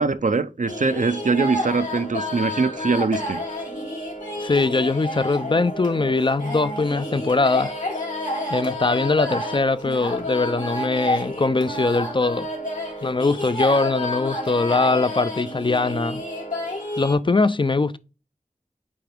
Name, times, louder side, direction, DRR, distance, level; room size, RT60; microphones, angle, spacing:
voice 1, 0.0-3.4, right 4 dB, 80° right, 0.6 m, -22 dB
sound 1, 0.7-17.1, left 1 dB, 85° left, 2.9 m, -30 dB
voice 2, 4.4-7.7 8.5-12.5 13.0-16.2 17.0-18.0, left 3 dB, 40° left, 0.4 m, -21 dB
8.6 x 3.4 x 3.4 m
wide cardioid pair, 50°, 13 cm